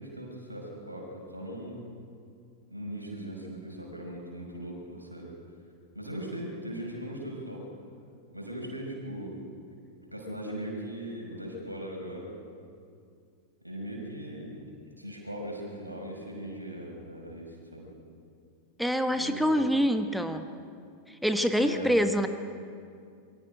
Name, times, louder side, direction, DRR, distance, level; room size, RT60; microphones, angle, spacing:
voice 1, 0.0-1.8 2.7-5.3 5.9-7.7 8.3-9.4 10.1-12.3 13.6-14.6 14.9-17.9 19.1-19.6 21.6-21.9, right 1 dB, 85° right, 0 dB, 5.6 m, -39 dB
voice 2, 18.8-20.5 21.1-22.3, equal, ahead, 8 dB, 1.1 m, -26 dB
27.5 x 23.5 x 5.1 m, 2.3 s
figure-of-eight pair, 90°, 0 cm